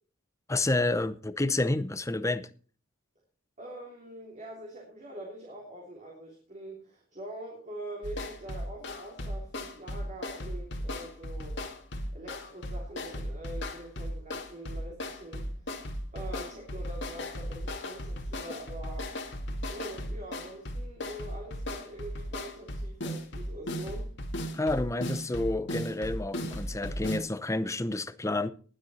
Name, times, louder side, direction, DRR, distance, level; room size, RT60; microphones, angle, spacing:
voice 1, 0.5-2.5 24.5-28.5, left 2 dB, 15° left, 0.7 m, -29 dB
voice 2, 3.6-11.6 12.1-19.1 19.7-24.1, right 1 dB, 35° right, 3.1 m, -44 dB
sound 1, 8.0-27.2, equal, 60° left, 2.1 m, -37 dB
19.5 x 7.7 x 4.2 m
head